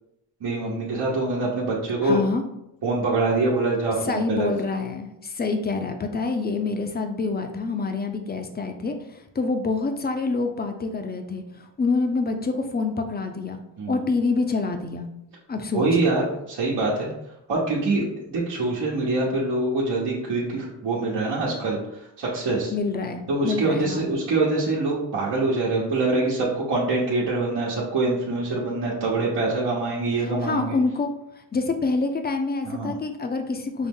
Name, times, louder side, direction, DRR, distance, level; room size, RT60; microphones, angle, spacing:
voice 1, 0.4-2.2 2.8-4.5 13.8-14.0 15.7-17.1 17.5-22.7 23.3-30.8 32.6-32.9, right 2 dB, 60° right, -6 dB, 1.1 m, -24 dB
voice 2, 2.0-2.4 4.0-9.0 9.3-11.4 11.8-13.6 13.9-15.1 15.5-15.9 22.7-24.1 30.4-31.1 31.5-33.9, left 3 dB, 20° left, 5 dB, 0.6 m, -26 dB
5.4 x 2.0 x 3.7 m, 0.84 s
cardioid pair, 70°, 43 cm